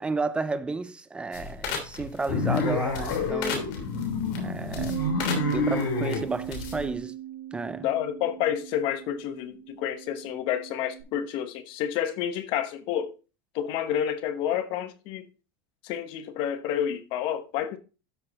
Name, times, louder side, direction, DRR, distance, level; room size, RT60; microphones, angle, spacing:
voice 1, 0.0-3.7 4.4-5.0 5.4-7.1 7.5-7.9, right 3 dB, 10° right, 0.5 m, -32 dB
sound 1, 1.3-7.0, left 5 dB, 65° left, 3.4 m, -37 dB
sound 2, 2.3-6.3, left 3 dB, 85° left, 5.1 m, -28 dB
Bass guitar, 4.8-11.0, right 12 dB, 50° right, 3.0 m, -38 dB
voice 2, 7.8-13.1 13.5-15.2 15.8-17.8, left 10 dB, 45° left, 1.1 m, -29 dB
12.5 x 6.4 x 3.0 m
supercardioid pair, 160°, 11 cm